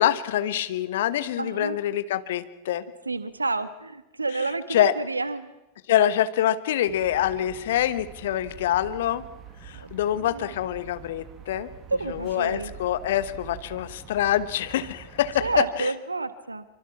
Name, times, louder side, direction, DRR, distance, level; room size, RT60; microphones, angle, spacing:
voice 1, 0.0-2.8 4.7-4.9 5.9-9.2 9.6-11.7 12.1-15.9, left 11 dB, 55° left, 13 dB, 1.3 m, -25 dB
voice 2, 1.4-1.8 3.0-5.5 9.8-9.9 10.1-10.5 11.9-12.7 15.4-16.6, right 3 dB, 80° right, 13 dB, 1.4 m, -29 dB
sound 1, 6.9-15.6, right 8 dB, 30° right, 2.1 m, -45 dB
26.0 x 24.5 x 6.0 m, 0.99 s
figure-of-eight pair, 90°, 0 cm